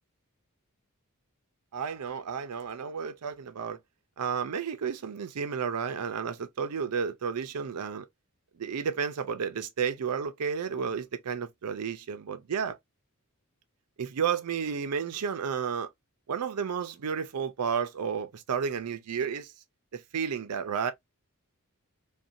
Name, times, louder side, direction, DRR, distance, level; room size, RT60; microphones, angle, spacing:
voice 1, 1.7-3.8 4.2-8.1 8.6-12.8 14.0-15.9 16.3-19.5 19.9-20.9, right 6 dB, 85° right, 0.5 m, -32 dB
2.5 x 2.2 x 2.6 m
head